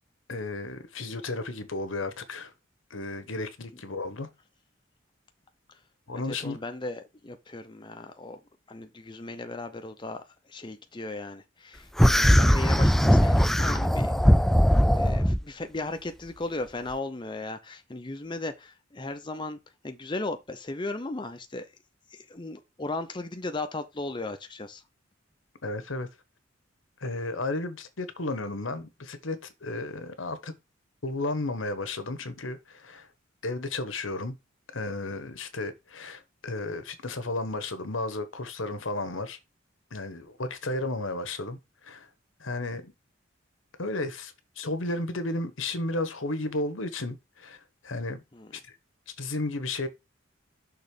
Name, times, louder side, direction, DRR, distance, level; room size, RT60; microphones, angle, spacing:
voice 1, 0.3-2.5 2.9-4.3 6.1-6.6 25.6-26.1 27.0-30.5 31.0-33.1 33.4-34.3 34.7-39.4 39.9-41.6 41.8-42.1 42.4-42.9 43.8-47.6 47.8-48.2 49.2-49.9, left 2 dB, 85° left, 1.2 m, -33 dB
voice 2, 6.1-8.4 8.7-14.1 14.9-19.6 19.8-21.7 22.1-24.8 48.3-48.6, left 2 dB, 25° left, 0.7 m, -36 dB
sound 1, 12.0-15.4, equal, ahead, 0.3 m, -20 dB
6.3 x 3.8 x 5.3 m
head